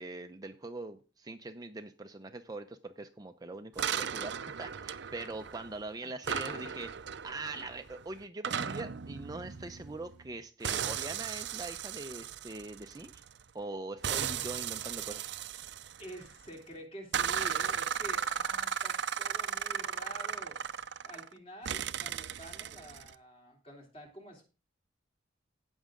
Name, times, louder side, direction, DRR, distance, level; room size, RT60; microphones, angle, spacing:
voice 1, 0.0-6.9 7.2-13.2 13.5-15.3, right 2 dB, 20° right, 7 dB, 0.6 m, -42 dB
sound 1, 3.8-5.8 6.2-10.3 10.6-13.4 14.0-16.5 17.1-21.3 21.7-23.1, right 8 dB, 60° right, 0.6 m, -36 dB
voice 2, 6.3-6.6 7.5-7.8 16.0-20.6 21.0-24.4, equal, 30° left, 1 dB, 3.2 m, -48 dB
17.5 x 6.3 x 3.8 m, 0.34 s
head